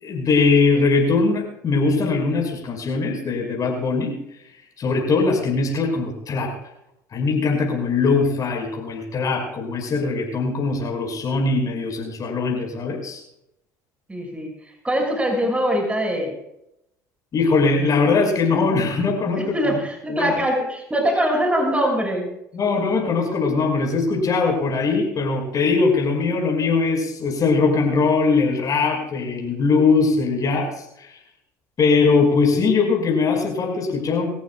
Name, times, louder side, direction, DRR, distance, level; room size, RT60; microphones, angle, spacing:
voice 1, 0.0-4.1 4.8-6.5 7.1-13.2 17.3-19.7 20.1-20.3 22.5-31.2 31.8-34.3, left 4 dB, 45° left, 0 dB, 5.6 m, -21 dB
voice 2, 14.1-16.3 19.4-22.3, equal, 15° right, 2 dB, 6.2 m, -23 dB
26.5 x 14.5 x 2.4 m, 0.81 s
hypercardioid pair, 65°, 9 cm